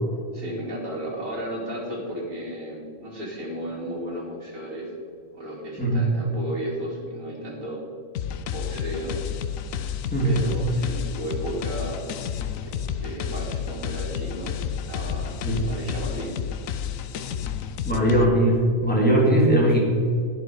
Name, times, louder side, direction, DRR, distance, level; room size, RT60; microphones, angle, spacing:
voice 1, 0.3-4.9 5.3-7.8 8.5-9.2 10.2-12.0 12.6-14.5 14.9-15.4 15.7-16.4, equal, 80° right, -4 dB, 2.9 m, -34 dB
sound 1, 8.1-18.2, left 8 dB, 90° left, 1.1 m, -31 dB
voice 2, 17.8-19.8, right 1 dB, 5° left, -4 dB, 3.0 m, -19 dB
11.0 x 10.5 x 4.8 m, 2.2 s
omnidirectional pair, 1.4 m